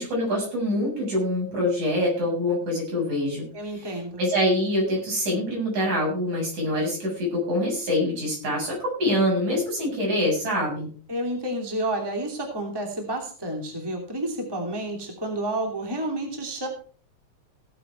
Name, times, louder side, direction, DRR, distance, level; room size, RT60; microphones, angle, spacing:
voice 1, 0.0-3.5 3.8-10.9, left 1 dB, 70° right, -2 dB, 8.9 m, -25 dB
voice 2, 3.5-4.2 11.1-16.7, right 1 dB, 10° right, 2 dB, 2.7 m, -30 dB
17.0 x 7.9 x 4.6 m, 0.41 s
omnidirectional pair, 3.5 m